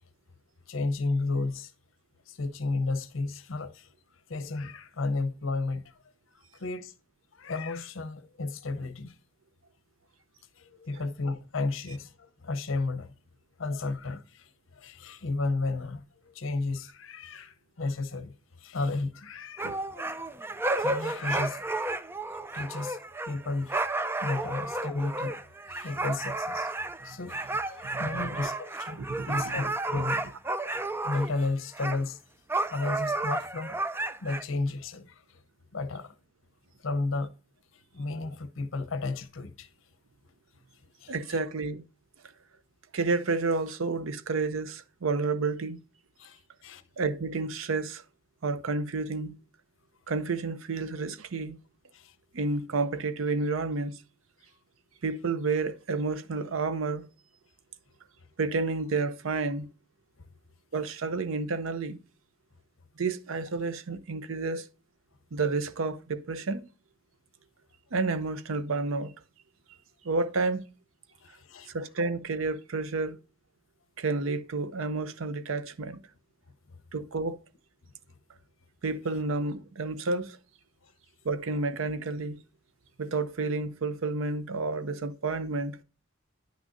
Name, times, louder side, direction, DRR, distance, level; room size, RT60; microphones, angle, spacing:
voice 1, 0.7-1.7 2.3-3.9 4.3-5.9 6.5-6.9 7.3-9.2 10.6-13.1 13.6-18.3 18.6-19.8 20.8-21.7 22.5-23.0 23.3-23.8 24.2-25.3 25.7-26.7 27.0-30.3 31.0-32.2 32.7-33.8 34.2-35.4 35.7-36.1 36.8-37.3 37.7-39.7 41.0-41.4 46.2-46.8 51.9-52.1 71.2-71.7, left 3 dB, 70° left, 0.7 m, -33 dB
sound 1, 19.6-31.5 31.7-32.0 32.5-34.4, right 2 dB, 10° right, 0.4 m, -32 dB
voice 2, 27.8-28.5 28.9-29.6 41.1-41.8 42.9-45.8 47.0-48.0 48.4-49.4 50.1-51.6 52.3-54.0 55.0-57.1 58.4-59.7 60.7-62.0 63.0-64.7 65.3-66.6 67.9-69.1 70.0-70.6 71.7-73.2 74.0-76.0 76.9-77.4 78.8-80.4 81.2-82.4 83.0-85.8, right 3 dB, 80° right, 0.6 m, -30 dB
9.8 x 6.2 x 2.6 m
head